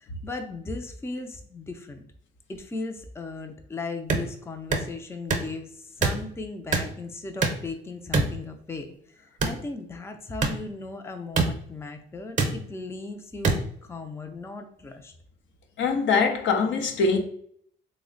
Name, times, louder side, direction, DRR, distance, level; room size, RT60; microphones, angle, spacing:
voice 1, 0.0-2.0 2.5-15.1, left 3 dB, 15° left, 0.4 m, -37 dB
sound 1, 4.1-4.2 4.7-4.9 5.3-5.5 6.0-6.2 6.7-6.9 7.4-7.7 8.1-8.3 9.4-9.6 10.4-10.5 11.3-11.5 12.4-12.5 13.4-13.6, right 4 dB, 40° right, 0.6 m, -23 dB
voice 2, 15.8-17.2, left 4 dB, 70° left, 0.6 m, -23 dB
3.2 x 2.1 x 3.7 m
cardioid pair, 90°, 20 cm